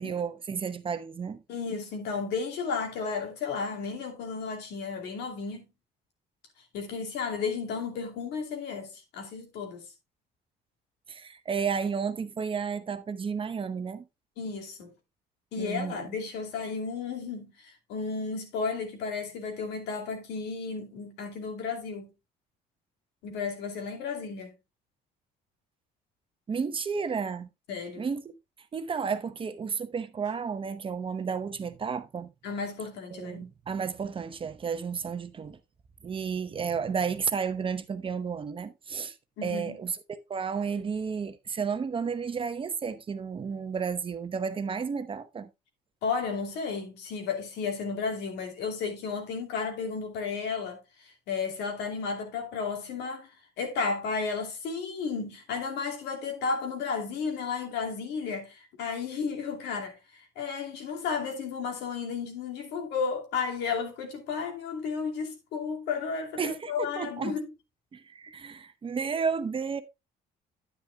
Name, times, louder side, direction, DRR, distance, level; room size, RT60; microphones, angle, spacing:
voice 1, 0.0-1.4 11.1-14.0 15.6-16.1 26.5-27.5 28.0-28.3 28.7-32.3 33.1-35.6 36.0-39.2 39.4-45.5 66.4-67.4 67.9-69.8, right 6 dB, 30° right, 0.8 m, -32 dB
voice 2, 1.5-5.6 6.7-9.8 14.4-14.9 15.5-22.1 23.2-24.5 27.7-28.0 32.4-33.5 39.4-39.8 46.0-53.3 53.6-67.4, left 5 dB, 85° left, 2.6 m, -33 dB
9.7 x 9.6 x 2.2 m
cardioid pair, 110°, 17 cm